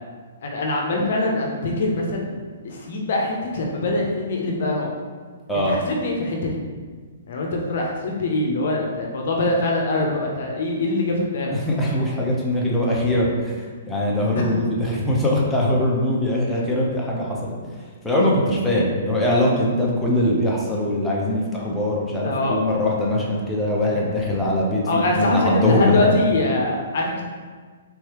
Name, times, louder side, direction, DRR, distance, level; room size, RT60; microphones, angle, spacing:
voice 1, 0.4-4.9 5.7-6.6 7.3-11.6 22.2-22.6 24.9-27.2, left 2 dB, 60° left, 0 dB, 0.7 m, -23 dB
voice 2, 11.5-24.8 25.1-26.2, left 1 dB, 5° left, -5 dB, 0.8 m, -22 dB
3.6 x 3.1 x 3.0 m, 1.5 s
hypercardioid pair, 130°, 0 cm